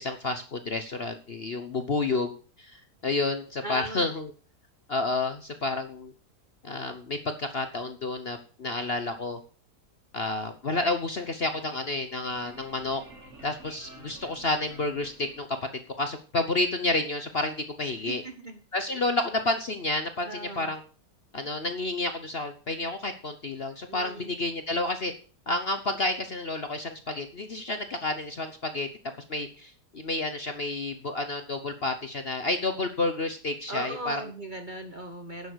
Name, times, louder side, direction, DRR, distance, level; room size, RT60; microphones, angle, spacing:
voice 1, 0.0-2.3 2.6-4.3 4.9-6.1 6.6-9.4 10.1-13.0 13.4-15.5 16.0-18.2 18.7-20.8 21.3-25.1 25.5-28.9 29.3-34.2, left 2 dB, 40° left, 8 dB, 1.0 m, -30 dB
voice 2, 3.6-4.0 18.0-18.6 18.9-19.1 20.2-20.7 23.9-24.3 33.7-35.5, right 1 dB, 35° right, 5 dB, 1.0 m, -38 dB
sound 1, 11.2-15.9, right 2 dB, 55° right, 4.4 m, -51 dB
11.0 x 7.2 x 6.3 m, 0.38 s
omnidirectional pair, 1.9 m